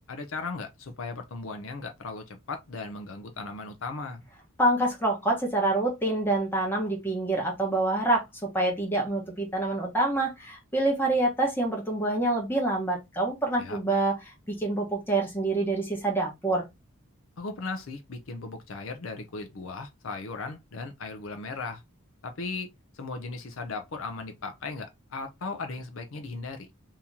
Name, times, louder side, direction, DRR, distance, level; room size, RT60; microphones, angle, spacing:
voice 1, 0.1-4.2 13.6-13.8 17.4-21.8 22.2-22.7 22.9-26.7, left 3 dB, 65° left, 0.6 m, -37 dB
voice 2, 4.6-8.2 8.5-14.1 14.5-16.7, right 2 dB, 10° left, 1.1 m, -26 dB
2.9 x 2.8 x 3.6 m
head